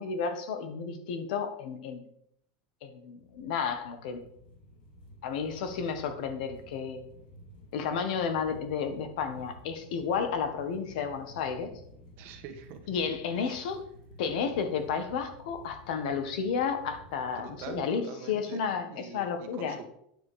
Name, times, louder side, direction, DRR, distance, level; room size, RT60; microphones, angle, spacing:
voice 1, 0.0-2.0 2.8-4.2 5.2-7.0 7.7-11.7 12.9-13.8 14.2-19.8, left 6 dB, 70° left, 8 dB, 1.6 m, -32 dB
sound 1, 3.2-17.7, left 1 dB, 85° left, 2.4 m, -52 dB
voice 2, 12.2-12.8 13.3-13.6 17.4-19.8, right 8 dB, 45° right, 5 dB, 1.4 m, -44 dB
9.7 x 6.8 x 5.1 m, 0.72 s
supercardioid pair, 160°, 5 cm